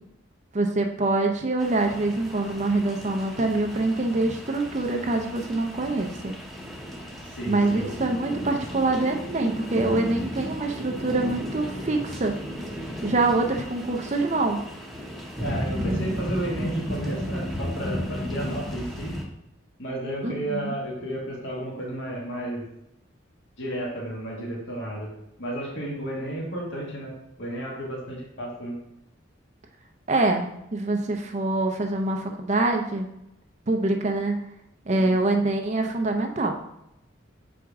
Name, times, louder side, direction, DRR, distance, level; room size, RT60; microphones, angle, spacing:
voice 1, 0.5-6.3 7.5-12.4 13.0-14.6 15.9-16.2 20.2-20.7 30.1-33.1 33.7-34.4 34.9-36.6, right 2 dB, 35° right, 3 dB, 0.5 m, -25 dB
sound 1, 1.6-19.2, equal, ahead, 0.9 m, -34 dB
voice 2, 7.2-7.9 15.4-19.2 19.8-22.7 23.6-25.1 25.4-28.8 35.0-35.1, right 1 dB, 70° left, -3 dB, 1.7 m, -32 dB
7.1 x 4.7 x 3.5 m, 0.83 s
head